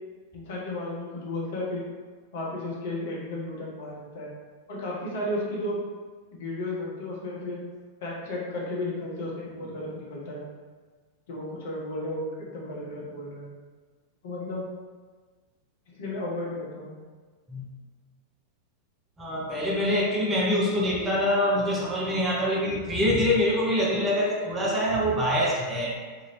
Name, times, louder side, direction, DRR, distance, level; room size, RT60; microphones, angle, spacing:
voice 1, 0.3-1.8 2.3-4.3 4.7-5.8 6.3-7.6 8.0-10.4 11.3-13.5 14.2-14.7 15.9-17.0, left 1 dB, 55° left, -4 dB, 0.8 m, -33 dB
voice 2, 19.2-26.0, left 1 dB, 15° right, -5 dB, 0.7 m, -25 dB
2.7 x 2.6 x 3.1 m, 1.5 s
figure-of-eight pair, 90°, 0 cm